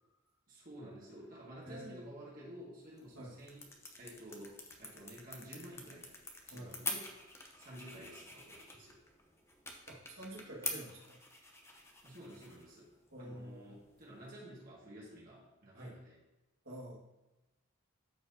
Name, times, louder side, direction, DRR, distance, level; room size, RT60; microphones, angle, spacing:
voice 1, 0.5-3.7 4.0-6.2 6.5-7.3 7.6-9.0 12.0-12.9 13.2-16.2, right 1 dB, 40° right, -5 dB, 1.9 m, -52 dB
voice 2, 1.6-2.1 3.2-3.3 6.5-6.7 9.9-11.2 13.1-13.8 15.8-16.0 16.7-17.0, right 1 dB, 60° right, -3 dB, 1.8 m, -48 dB
sound 1, 2.8-14.3, left 2 dB, 10° left, 0.7 m, -47 dB
13.5 x 4.6 x 2.8 m, 1.0 s
head